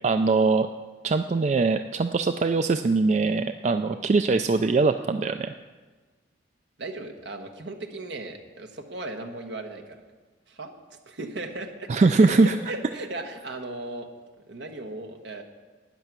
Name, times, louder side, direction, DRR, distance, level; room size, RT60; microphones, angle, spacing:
voice 1, 0.0-0.7 1.0-5.5 11.9-12.5, right 3 dB, 35° right, 8 dB, 0.3 m, -22 dB
voice 2, 6.8-10.0 10.5-10.7 11.1-14.1 14.5-15.4, right 2 dB, 70° right, 4 dB, 1.2 m, -36 dB
12.0 x 9.4 x 6.0 m, 1.4 s
head